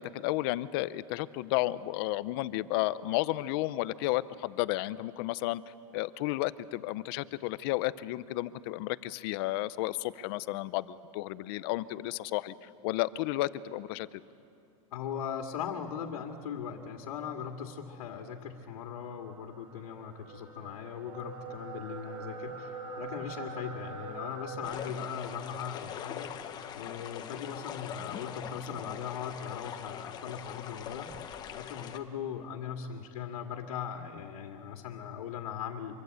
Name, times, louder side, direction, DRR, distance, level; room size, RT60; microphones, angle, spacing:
voice 1, 0.0-5.6 5.9-14.1, left 17 dB, 40° left, 16 dB, 0.6 m, -32 dB
voice 2, 14.9-31.2 31.5-36.0, left 8 dB, 80° left, 3 dB, 2.2 m, -39 dB
sound 1, 17.7-24.6, right 4 dB, 75° right, 6.6 m, -44 dB
sound 2, 24.6-32.0, left 9 dB, 20° left, 1.1 m, -42 dB
25.5 x 23.5 x 8.1 m, 2.6 s
supercardioid pair, 165°, 18 cm